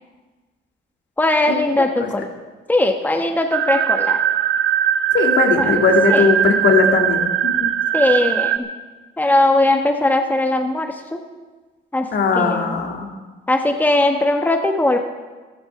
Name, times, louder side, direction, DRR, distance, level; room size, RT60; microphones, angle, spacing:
voice 1, 1.2-2.3 2.7-4.2 5.6-5.7 6.1-6.3 7.9-8.7 9.2-11.2 11.9-12.1 12.3-12.8 13.5-15.0, left 2 dB, 10° left, 4 dB, 1.2 m, -19 dB
sound 1, 3.5-8.6, right 9 dB, 80° right, 0.7 m, -19 dB
voice 2, 5.1-7.3 7.6-7.7 12.1-13.1, left 4 dB, 65° left, 3 dB, 2.3 m, -18 dB
14.0 x 12.5 x 6.0 m, 1.3 s
cardioid pair, 90°, 20 cm